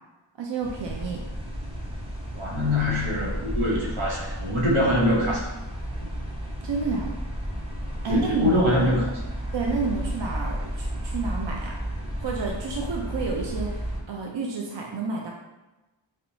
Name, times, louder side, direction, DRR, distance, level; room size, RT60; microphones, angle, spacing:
voice 1, 0.4-1.2 6.6-7.2 8.0-8.5 9.5-11.7 12.2-13.8 14.1-15.3, right 4 dB, 65° right, -1 dB, 0.5 m, -29 dB
sound 1, 0.6-14.0, equal, 10° right, 0.6 m, -32 dB
voice 2, 2.3-5.5 6.0-6.1 8.1-9.1, left 1 dB, 85° right, -4 dB, 0.9 m, -24 dB
4.3 x 2.1 x 2.6 m, 1.1 s
wide cardioid pair, 45°, 48 cm